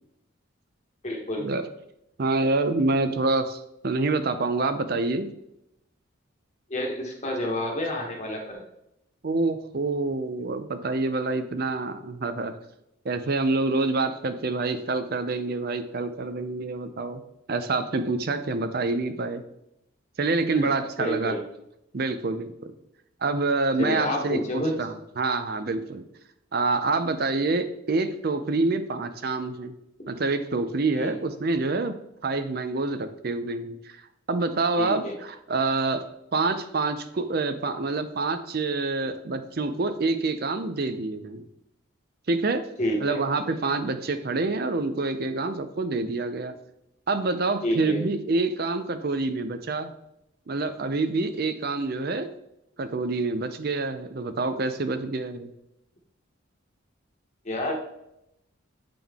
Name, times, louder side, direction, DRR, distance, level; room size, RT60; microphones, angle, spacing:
voice 1, 1.0-1.5 6.7-8.6 20.5-21.4 23.8-24.7 30.9-31.1 34.8-35.2 42.8-43.2 47.6-48.0 57.4-57.7, left 1 dB, 35° left, 0 dB, 1.2 m, -29 dB
voice 2, 2.2-5.3 9.2-12.5 13.0-17.2 17.5-19.4 20.2-21.4 21.9-22.7 23.2-26.0 26.5-29.7 30.1-32.0 32.2-34.0 34.3-36.0 36.3-41.4 42.3-42.6 43.0-46.5 47.1-49.9 50.5-52.3 52.8-55.5, right 3 dB, 45° right, 10 dB, 0.5 m, -27 dB
8.7 x 3.8 x 3.5 m, 0.82 s
head